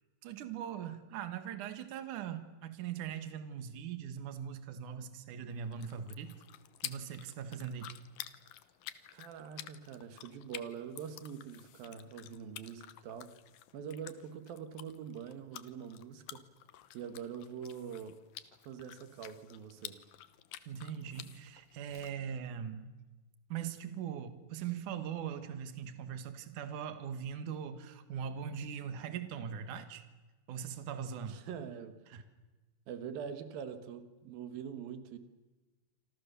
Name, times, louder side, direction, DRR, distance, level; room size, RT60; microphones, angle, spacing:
voice 1, 0.2-6.3 6.8-7.9 20.7-22.9 23.5-30.0 30.5-31.4 32.1-32.2, right 8 dB, 65° right, 10 dB, 2.9 m, -41 dB
sound 1, 5.5-22.1, left 13 dB, 80° left, 2.7 m, -51 dB
voice 2, 9.1-13.3 13.7-16.4 16.9-18.2 18.6-20.0 24.6-24.7 31.3-32.0 32.9-35.2, right 7 dB, 90° right, 9 dB, 3.3 m, -44 dB
27.5 x 25.5 x 6.9 m, 1.2 s
omnidirectional pair, 4.0 m